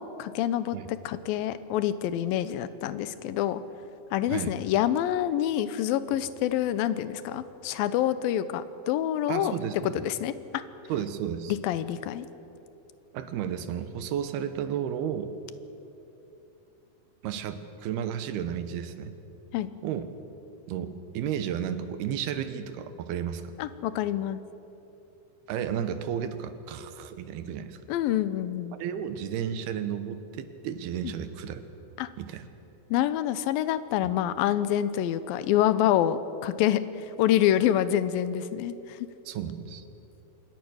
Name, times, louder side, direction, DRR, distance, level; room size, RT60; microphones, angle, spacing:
voice 1, 0.0-3.6 4.1-9.6 9.8-10.6 11.5-12.3 19.5-19.7 23.6-24.4 27.9-28.8 32.0-32.1 32.9-39.0, left 11 dB, 75° left, 13 dB, 2.5 m, -27 dB
voice 2, 9.3-10.0 10.9-11.5 13.1-15.3 17.2-19.1 19.8-20.1 20.7-23.4 25.5-27.8 28.7-31.6 32.2-32.5 39.3-39.8, right 9 dB, 85° right, 10 dB, 3.1 m, -33 dB
26.0 x 21.5 x 6.4 m, 2.9 s
omnidirectional pair, 4.4 m